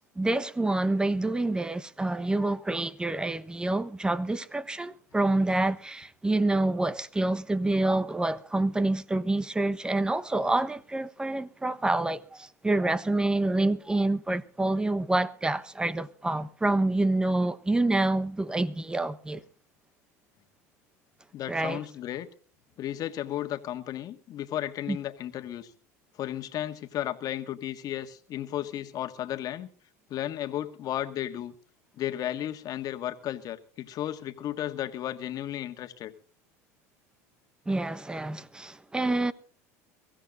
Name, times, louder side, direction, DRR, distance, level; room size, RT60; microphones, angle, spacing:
voice 1, 0.0-19.4 21.5-21.8 24.9-25.0 37.7-39.3, right 2 dB, 10° right, 1.1 m, -27 dB
voice 2, 21.3-22.3 22.8-25.7 26.2-29.7 30.1-31.5 32.0-36.1, left 12 dB, 45° left, 1.7 m, -34 dB
23.0 x 15.5 x 2.6 m
hypercardioid pair, 95°, 8 cm